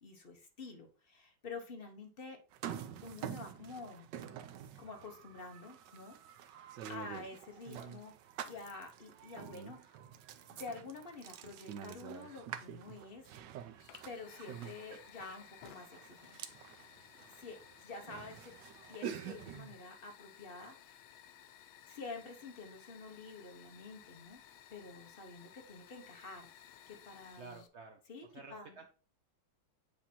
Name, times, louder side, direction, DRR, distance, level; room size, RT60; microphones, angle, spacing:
voice 1, 0.0-2.4 3.0-4.1 4.8-6.2 6.4-8.1 8.4-10.0 10.5-13.3 14.0-16.4 17.3-18.5 18.9-21.1 21.9-24.4 24.7-26.5 26.9-27.6 28.1-28.8, left 3 dB, 40° left, 4 dB, 0.9 m, -49 dB
sound 1, 2.5-19.7, right 9 dB, 70° right, 1.2 m, -48 dB
Fire, 13.8-27.7, left 10 dB, 90° left, 1.5 m, -58 dB
voice 2, 27.4-28.0 28.3-28.8, right 4 dB, 90° right, 3 dB, 0.6 m, -51 dB
8.4 x 2.9 x 4.2 m, 0.36 s
omnidirectional pair, 2.2 m